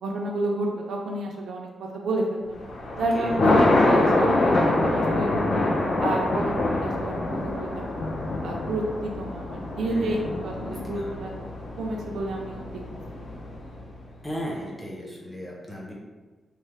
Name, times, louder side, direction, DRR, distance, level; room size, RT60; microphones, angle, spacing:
voice 1, 0.0-2.6 2.9-5.6 6.0-8.1 8.4-11.3 11.8-12.7 13.1-13.2, right 2 dB, 90° right, -1 dB, 0.4 m, -30 dB
Thunder, 2.5-13.9, left 2 dB, 50° left, 0.5 m, -25 dB
voice 2, 9.9-10.5 10.9-11.1 14.2-15.9, equal, 10° left, -5 dB, 0.7 m, -35 dB
3.2 x 2.0 x 3.2 m, 1.3 s
wide cardioid pair, 135°, 0 cm